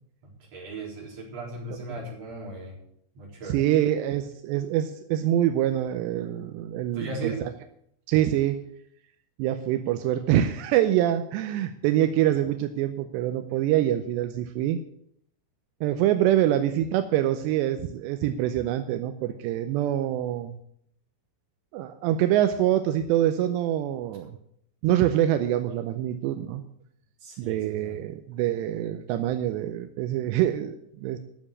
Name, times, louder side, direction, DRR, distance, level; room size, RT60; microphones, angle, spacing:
voice 1, 0.2-2.8 3.1-3.7 6.9-7.4 27.2-28.0, right 2 dB, 40° right, -4 dB, 5.0 m, -37 dB
voice 2, 3.5-7.3 8.1-8.6 9.4-14.8 15.8-20.6 21.7-24.3 24.8-26.6 27.4-31.2, right 12 dB, 85° right, 8 dB, 2.9 m, -25 dB
11.5 x 7.0 x 8.5 m, 0.69 s
omnidirectional pair, 4.9 m